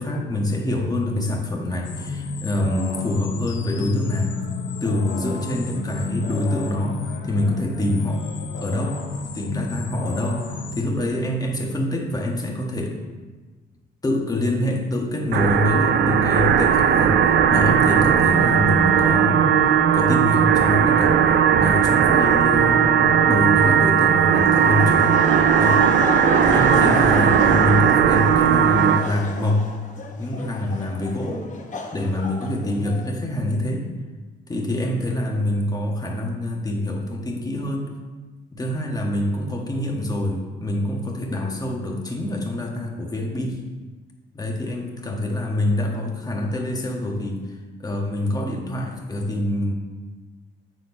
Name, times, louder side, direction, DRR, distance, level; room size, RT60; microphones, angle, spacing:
voice 1, 0.0-4.3 4.8-8.3 8.6-9.0 9.3-13.0 14.0-21.2 21.6-25.2 25.6-25.8 26.4-29.7 30.2-31.5 31.9-33.9 34.5-37.9 38.5-43.6 44.3-47.4 47.8-49.7, left 1 dB, 20° left, 0 dB, 1.4 m, -25 dB
sound 1, 1.8-10.8, left 4 dB, 70° left, 0.9 m, -32 dB
sound 2, 15.3-29.0, right 8 dB, 60° right, 0.5 m, -17 dB
Laughter, 24.6-33.1, left 3 dB, 40° left, 1.0 m, -31 dB
7.8 x 4.2 x 5.4 m, 1.3 s
cardioid pair, 90°, 20 cm